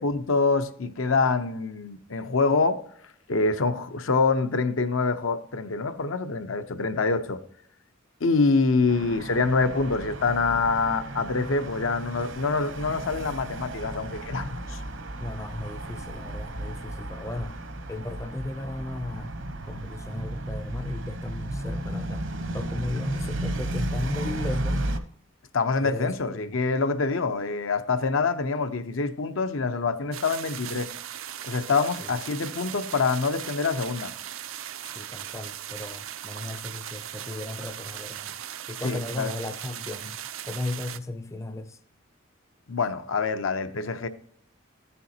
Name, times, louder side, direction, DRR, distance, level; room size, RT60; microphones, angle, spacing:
voice 1, 0.0-2.8 3.3-7.4 8.2-14.8 25.5-30.9 31.4-34.1 38.8-39.3 42.7-44.1, left 4 dB, 85° left, 0.7 m, -25 dB
sound 1, 8.9-25.0, right 1 dB, 70° right, 0.9 m, -34 dB
voice 2, 15.2-17.6 17.9-19.4 19.6-22.2 22.5-24.9 25.8-26.6 32.0-32.2 34.8-38.3 38.7-40.2 40.5-41.8, left 2 dB, 15° left, 0.5 m, -35 dB
sound 2, 30.1-41.0, right 11 dB, 85° right, 0.5 m, -38 dB
14.0 x 6.9 x 2.8 m
head